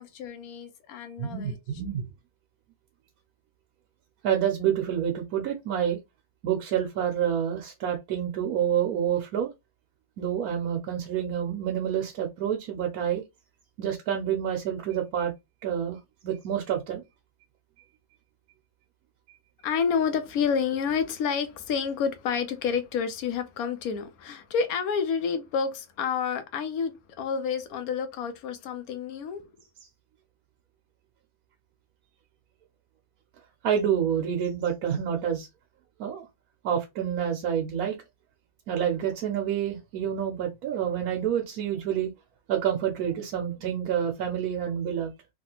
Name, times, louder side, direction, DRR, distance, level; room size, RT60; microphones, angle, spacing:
voice 1, 0.0-1.8 19.6-29.4, left 6 dB, 80° left, 1.1 m, -29 dB
voice 2, 1.2-2.1 4.2-6.0 6.4-9.5 10.2-13.2 13.8-15.3 15.6-16.0 16.2-17.0 33.6-35.5 36.0-36.3 36.6-38.0 38.7-42.1 42.5-45.1, right 9 dB, 85° right, 1.2 m, -28 dB
3.2 x 2.4 x 2.9 m
omnidirectional pair, 1.5 m